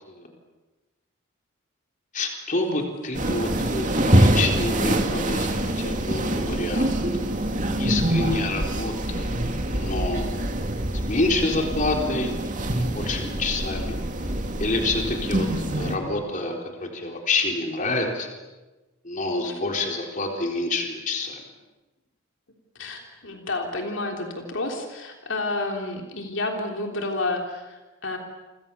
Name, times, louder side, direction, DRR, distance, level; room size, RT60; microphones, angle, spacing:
voice 1, 2.1-7.0 7.8-9.4 9.7-10.2 11.1-12.4 12.7-14.0 14.6-18.3 19.0-21.4, left 2 dB, 40° left, 2 dB, 3.9 m, -28 dB
sound 1, 3.1-16.0, right 1 dB, 40° right, 2.6 m, -25 dB
voice 2, 15.2-15.7 19.4-19.6 22.8-28.2, left 2 dB, 65° left, 2 dB, 3.5 m, -30 dB
29.0 x 25.5 x 7.1 m, 1.1 s
head